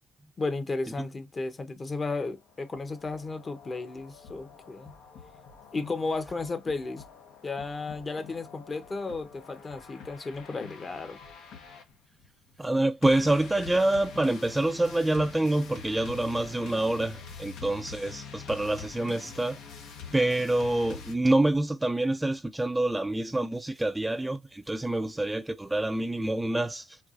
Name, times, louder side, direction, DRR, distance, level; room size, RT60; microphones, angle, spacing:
voice 1, 0.4-4.9 5.7-7.0 7.4-11.2, left 3 dB, 35° left, 0.8 m, -34 dB
sound 1, 2.4-21.1, left 6 dB, 85° left, 1.0 m, -46 dB
voice 2, 12.6-19.6 20.1-27.0, right 1 dB, 10° right, 0.3 m, -27 dB
4.4 x 2.4 x 2.4 m
cardioid pair, 90°, 0 cm